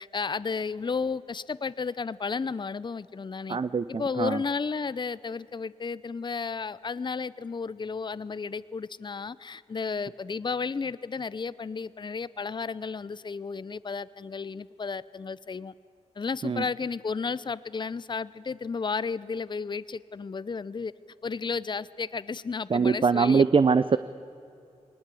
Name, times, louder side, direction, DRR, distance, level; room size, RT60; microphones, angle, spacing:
voice 1, 0.0-3.6 3.9-15.7 16.2-20.9 21.2-23.4, left 5 dB, 40° left, 17 dB, 0.6 m, -33 dB
voice 2, 3.5-4.4 16.4-16.6 22.7-24.0, right 5 dB, 45° right, 13 dB, 0.6 m, -23 dB
21.5 x 19.5 x 8.4 m, 2.5 s
cardioid pair, 60°, 13 cm